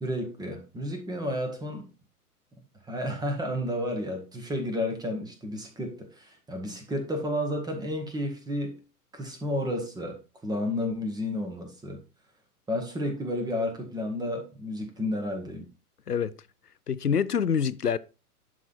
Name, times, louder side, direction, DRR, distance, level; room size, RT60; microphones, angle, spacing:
voice 1, 0.0-1.9 2.9-8.8 9.1-12.0 12.7-15.7, left 1 dB, 10° right, 1.7 m, -31 dB
voice 2, 16.9-18.0, left 7 dB, 90° left, 0.7 m, -26 dB
11.0 x 3.7 x 4.4 m
figure-of-eight pair, 105°, 45 cm